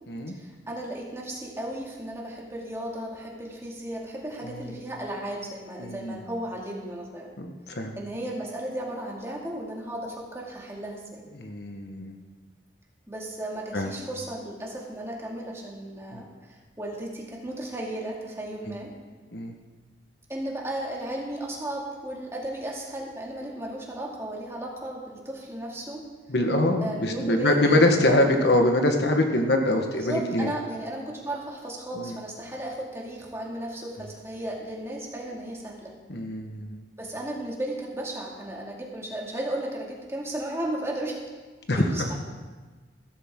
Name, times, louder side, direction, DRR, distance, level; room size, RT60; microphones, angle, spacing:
voice 1, 0.3-7.3 8.0-11.2 13.1-18.9 20.3-26.1 26.8-27.9 29.9-35.9 37.0-41.2 41.7-42.2, right 1 dB, 15° right, -3 dB, 2.3 m, -35 dB
voice 2, 4.4-4.7 5.8-6.2 7.4-8.0 11.3-12.2 13.7-13.9 16.1-16.2 19.3-19.5 26.3-30.5 31.9-32.1 36.1-36.8 41.7-41.8, left 1 dB, 65° left, 3 dB, 1.4 m, -24 dB
16.0 x 13.5 x 3.8 m, 1.3 s
head